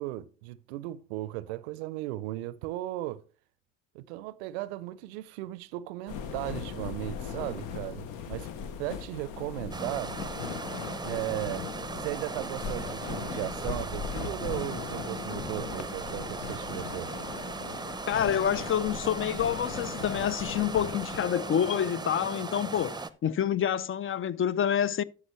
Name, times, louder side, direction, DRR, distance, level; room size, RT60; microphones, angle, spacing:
voice 1, 0.0-3.2 3.9-8.5 8.8-10.1 11.0-11.7 12.0-17.1, right 16 dB, 85° right, 0.5 m, -36 dB
sound 1, 6.1-21.2, left 7 dB, 70° left, 0.9 m, -39 dB
sound 2, 9.7-23.1, right 3 dB, 15° right, 0.7 m, -38 dB
voice 2, 18.1-25.0, left 9 dB, 40° left, 0.5 m, -28 dB
13.0 x 5.7 x 3.1 m
hypercardioid pair, 45°, 32 cm